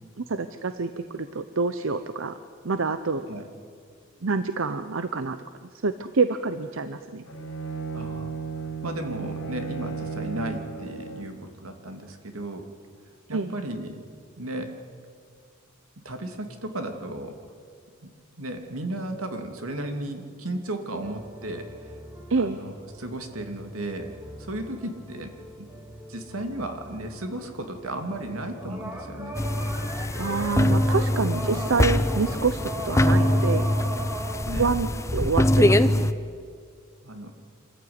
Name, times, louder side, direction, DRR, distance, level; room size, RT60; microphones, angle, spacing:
voice 1, 0.2-2.4 2.6-3.3 4.2-5.4 5.8-7.2 13.3-13.5 22.3-22.6 30.2-33.7 34.6-36.1, right 4 dB, 65° right, 11 dB, 0.8 m, -27 dB
Bowed string instrument, 7.2-11.5, right 5 dB, 75° left, 4.4 m, -34 dB
voice 2, 7.9-8.4 8.8-12.7 13.3-14.0 14.4-14.7 16.0-17.4 18.0-18.1 18.4-22.0 22.4-25.7 26.1-29.4 31.3-31.8 34.4-34.7 37.0-37.3, right 1 dB, 85° right, 5 dB, 2.6 m, -35 dB
sound 1, 21.0-35.3, equal, 10° right, 3.7 m, -39 dB
sound 2, 29.3-36.1, left 1 dB, 15° left, 0.7 m, -23 dB
26.0 x 14.5 x 9.6 m, 2.1 s
head